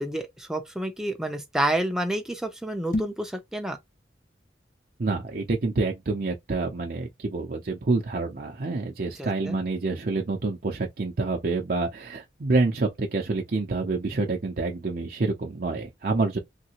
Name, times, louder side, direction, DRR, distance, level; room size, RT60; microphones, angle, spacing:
voice 1, 0.0-3.8 9.2-9.6, right 1 dB, 5° right, 0.6 m, -29 dB
sound 1, 2.8-3.3, left 1 dB, 45° left, 0.7 m, -30 dB
voice 2, 5.0-16.4, right 3 dB, 55° right, 0.6 m, -27 dB
3.3 x 2.7 x 2.9 m
head